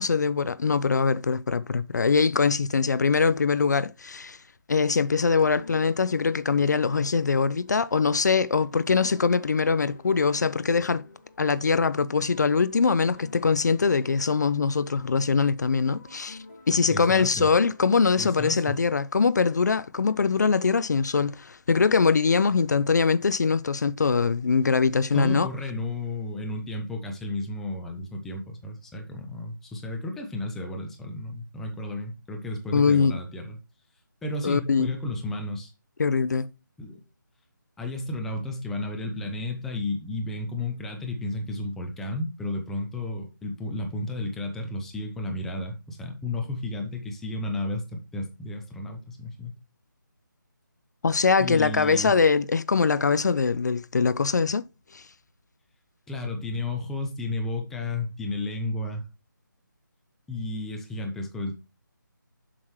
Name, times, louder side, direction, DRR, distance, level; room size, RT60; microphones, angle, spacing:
voice 1, 0.0-4.4 4.7-11.0 11.4-16.4 16.7-25.5 32.7-33.2 34.4-34.9 36.0-36.5 51.0-54.6 54.9-55.0, left 5 dB, 55° left, 0.4 m, -23 dB
sound 1, 5.2-19.4, left 2 dB, 30° left, 1.9 m, -51 dB
voice 2, 16.9-17.5 18.2-18.8 25.1-33.6 34.2-35.7 36.8-37.0 37.8-49.5 51.4-52.1 56.1-59.0 60.3-61.6, left 2 dB, 5° left, 0.5 m, -32 dB
7.5 x 6.0 x 3.1 m
figure-of-eight pair, 160°, 11 cm